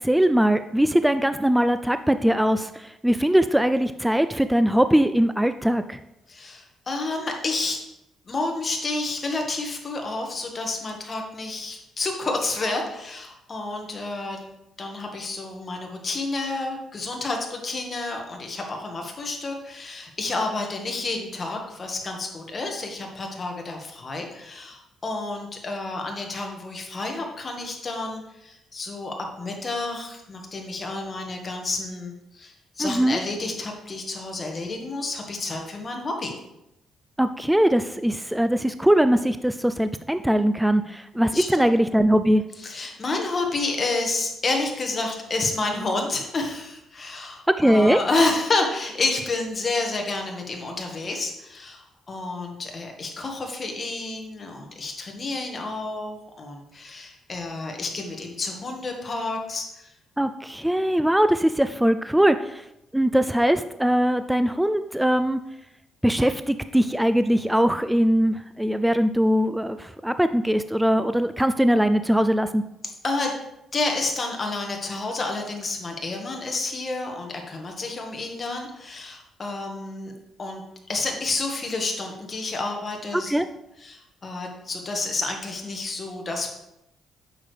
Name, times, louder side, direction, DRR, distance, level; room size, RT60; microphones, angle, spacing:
voice 1, 0.0-6.0 32.8-33.2 37.2-42.4 47.5-48.0 60.2-62.6 62.9-65.4 66.0-72.6 83.3-83.5, equal, 5° right, 10 dB, 0.3 m, -21 dB
voice 2, 6.3-7.8 8.3-14.4 14.8-36.3 41.3-41.7 42.6-59.9 73.0-73.3 73.7-80.1 80.4-80.6 80.9-83.3 83.8-86.5, left 3 dB, 35° left, 2 dB, 1.6 m, -30 dB
8.7 x 6.5 x 3.4 m, 0.86 s
cardioid pair, 90°, 0 cm